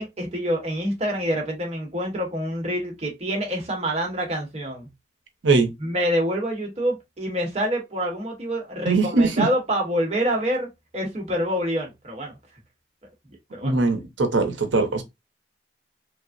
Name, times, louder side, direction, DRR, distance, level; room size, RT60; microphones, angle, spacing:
voice 1, 0.0-4.9 5.8-12.3 13.5-13.7, equal, 35° right, 0.9 m, -26 dB
voice 2, 8.9-9.5 13.6-15.0, right 3 dB, 80° right, 0.7 m, -21 dB
3.2 x 2.0 x 2.4 m
head